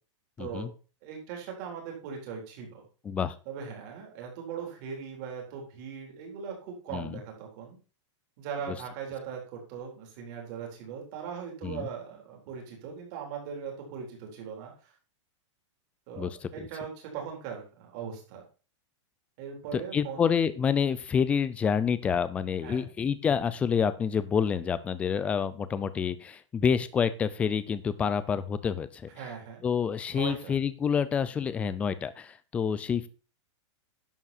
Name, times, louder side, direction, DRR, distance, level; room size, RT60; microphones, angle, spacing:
voice 1, 0.4-0.7 3.0-3.4 6.9-7.2 8.7-8.8 11.6-11.9 16.2-16.7 19.7-29.1 29.6-33.1, left 7 dB, 10° left, 15 dB, 0.4 m, -28 dB
voice 2, 1.0-2.8 3.5-7.8 8.4-14.9 16.1-18.4 19.4-20.3 22.6-22.9 29.2-29.6 30.1-30.5, right 7 dB, 35° right, 1 dB, 3.9 m, -39 dB
11.0 x 7.3 x 4.3 m, 0.35 s
supercardioid pair, 170°, 16 cm